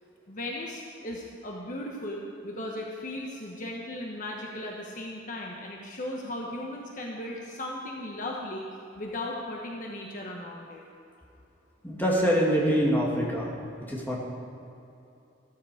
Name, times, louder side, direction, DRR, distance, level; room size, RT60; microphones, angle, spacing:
voice 1, 0.3-8.7 8.9-10.8, left 1 dB, 45° left, -1 dB, 1.3 m, -37 dB
voice 2, 11.8-13.5 13.9-14.2, equal, 10° left, -4 dB, 2.6 m, -24 dB
14.5 x 13.5 x 5.0 m, 2.8 s
head